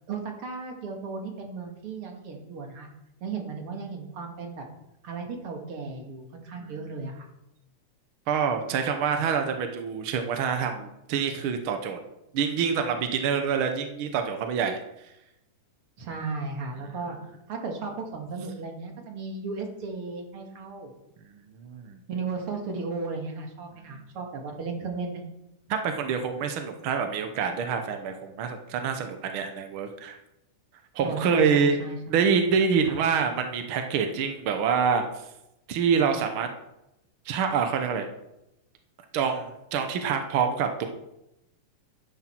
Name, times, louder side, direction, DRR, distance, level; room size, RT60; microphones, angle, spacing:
voice 1, 0.1-2.9 3.2-4.6 5.0-7.3 16.0-17.2 17.5-20.9 22.1-25.2 31.0-32.0, right 4 dB, 45° right, 2 dB, 2.4 m, -35 dB
voice 2, 8.3-12.0 12.3-14.8 21.3-22.0 25.7-30.2 30.9-31.8 32.1-35.2 35.7-36.5 37.2-38.1 39.1-40.9, right 6 dB, 75° right, 6 dB, 1.2 m, -26 dB
13.0 x 10.0 x 4.5 m, 0.88 s
omnidirectional pair, 3.7 m